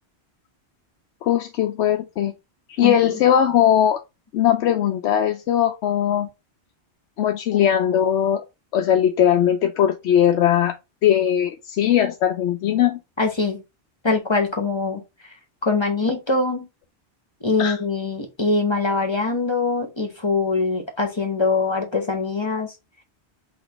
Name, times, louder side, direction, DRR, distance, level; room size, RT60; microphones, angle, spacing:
voice 1, 1.2-2.3 2.7-4.0 4.3-6.3 7.2-8.4 8.7-10.7 11.0-13.0 17.6-17.8, left 10 dB, 85° left, 0.9 m, -19 dB
voice 2, 13.2-13.6 14.0-15.0 15.6-16.7 17.4-22.7, left 3 dB, 25° left, 0.8 m, -23 dB
4.1 x 2.8 x 4.5 m
omnidirectional pair, 1.1 m